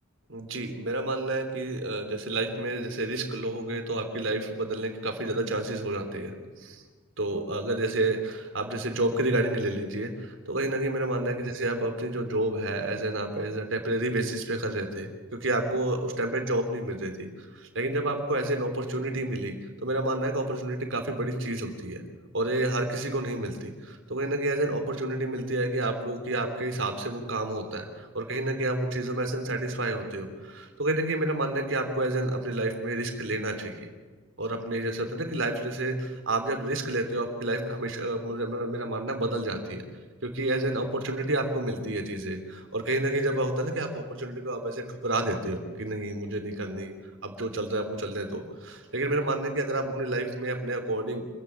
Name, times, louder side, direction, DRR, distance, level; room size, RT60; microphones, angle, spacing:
voice 1, 0.3-6.8 7.2-15.1 15.4-22.0 22.3-33.9 34.4-39.8 40.2-46.9 47.2-51.2, right 2 dB, 75° right, 6 dB, 3.3 m, -30 dB
27.0 x 14.5 x 8.3 m, 1.4 s
head